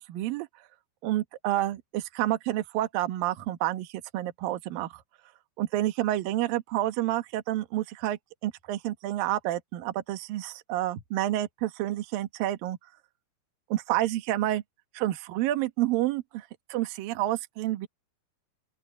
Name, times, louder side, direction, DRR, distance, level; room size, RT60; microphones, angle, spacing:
voice 1, 0.1-0.5 1.0-5.0 5.6-12.8 13.7-14.6 14.9-17.9, right 14 dB, 65° right, 2.4 m, -29 dB
open air
omnidirectional pair, 5.8 m